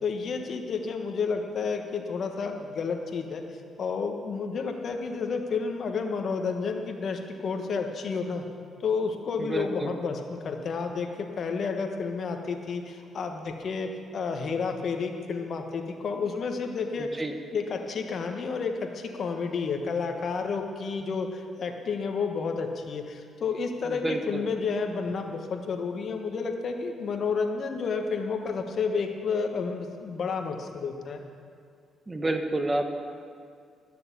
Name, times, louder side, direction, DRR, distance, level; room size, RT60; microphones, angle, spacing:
voice 1, 0.0-3.4 3.8-8.4 8.8-17.2 17.5-31.2, left 5 dB, 55° left, 4 dB, 1.4 m, -31 dB
voice 2, 9.4-9.9 17.0-17.3 23.8-24.4 32.1-32.9, right 2 dB, 20° right, 6 dB, 1.1 m, -29 dB
12.5 x 6.8 x 8.3 m, 2.2 s
cardioid pair, 90°, 0 cm